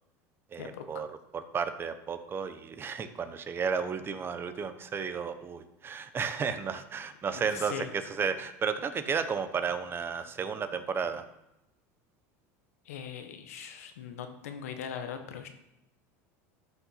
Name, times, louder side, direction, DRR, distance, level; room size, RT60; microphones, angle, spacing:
voice 1, 0.5-1.1 1.3-11.2, right 6 dB, 30° right, 10 dB, 1.1 m, -33 dB
voice 2, 7.5-7.9 12.8-15.5, left 8 dB, 90° left, 7 dB, 1.3 m, -40 dB
12.5 x 5.8 x 5.9 m, 0.86 s
supercardioid pair, 105°, 8 cm